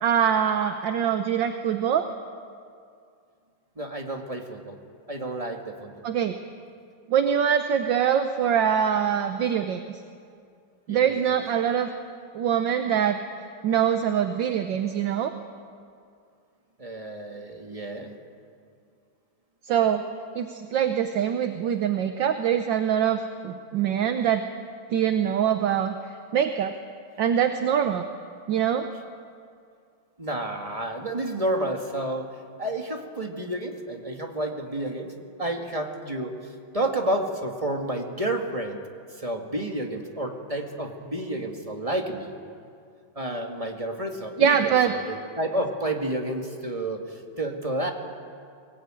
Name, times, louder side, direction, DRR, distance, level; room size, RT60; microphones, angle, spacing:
voice 1, 0.0-2.1 6.0-6.4 7.1-10.0 10.9-11.9 12.3-13.2 13.6-15.3 19.6-20.0 20.3-24.5 24.9-25.9 26.3-26.7 27.2-28.0 28.5-28.9 44.4-44.9, right 8 dB, 65° right, 8 dB, 1.5 m, -23 dB
voice 2, 3.8-4.8 5.1-6.0 10.9-11.3 16.8-18.2 30.2-32.3 32.6-35.1 35.4-36.4 36.7-38.8 39.2-42.3 43.2-47.9, right 1 dB, 15° right, 3 dB, 1.9 m, -30 dB
22.0 x 19.0 x 9.0 m, 2.3 s
omnidirectional pair, 2.3 m